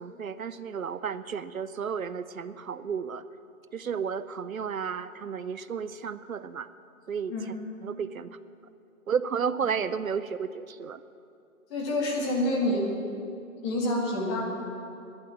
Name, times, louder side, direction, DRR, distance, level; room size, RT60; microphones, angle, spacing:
voice 1, 0.0-3.2 3.7-6.7 7.1-7.3 7.8-8.4 9.1-11.0, right 6 dB, 70° right, 14 dB, 0.7 m, -32 dB
voice 2, 11.7-12.9 13.6-14.4, left 1 dB, 20° left, -2 dB, 2.3 m, -27 dB
12.5 x 11.0 x 8.7 m, 2.6 s
figure-of-eight pair, 150°, 42 cm